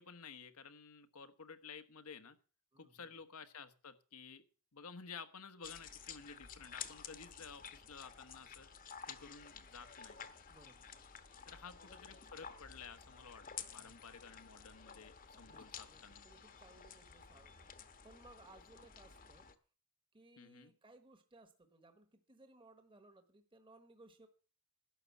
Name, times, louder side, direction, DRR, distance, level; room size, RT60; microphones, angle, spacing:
voice 1, 0.0-2.4 2.8-4.4 4.7-8.7 9.1-10.3 11.5-13.4 13.7-16.2 20.4-20.7, left 5 dB, 80° left, 10 dB, 1.2 m, -53 dB
voice 2, 2.7-3.2 10.5-11.0 11.5-11.7 13.7-14.1 15.4-19.5 20.1-24.3, right 2 dB, 25° right, 7 dB, 1.2 m, -63 dB
sound 1, 5.6-19.5, left 7 dB, 40° left, 1.0 m, -52 dB
12.0 x 6.8 x 8.3 m, 0.38 s
head